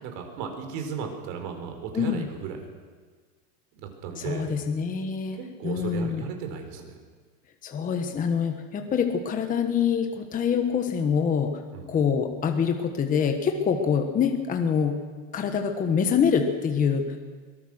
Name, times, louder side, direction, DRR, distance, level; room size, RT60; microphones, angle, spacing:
voice 1, 0.0-2.7 3.7-4.6 5.3-7.0 11.7-12.0, right 6 dB, 50° right, 5 dB, 4.3 m, -35 dB
voice 2, 1.9-2.3 4.2-5.4 5.6-6.3 7.6-11.6 11.9-15.0 15.3-17.2, left 7 dB, 20° left, 5 dB, 1.2 m, -25 dB
22.5 x 19.0 x 6.5 m, 1.5 s
supercardioid pair, 155°, 46 cm